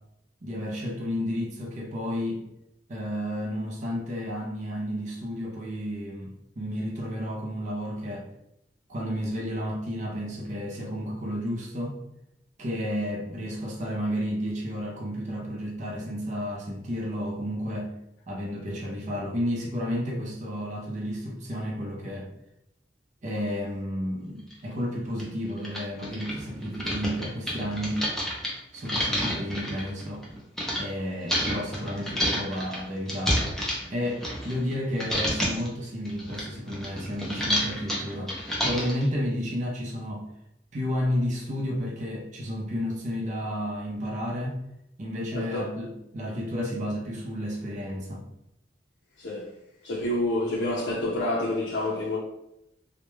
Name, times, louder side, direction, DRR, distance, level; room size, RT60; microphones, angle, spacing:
voice 1, 0.4-2.4 2.9-8.3 8.9-12.0 12.6-17.9 18.3-22.3 23.2-28.1 28.7-30.2 30.8-33.5 33.9-40.2 40.7-44.6 45.0-48.2, equal, 45° right, 0.5 m, -32 dB
sound 1, 24.5-24.6 25.2-25.3 25.6-30.8 31.3-34.7 35.0-35.7 36.0-39.0, equal, ahead, 0.5 m, -29 dB
voice 2, 45.3-45.7 49.2-49.5 49.8-52.2, left 1 dB, 85° left, 0.4 m, -28 dB
2.2 x 2.1 x 3.0 m
head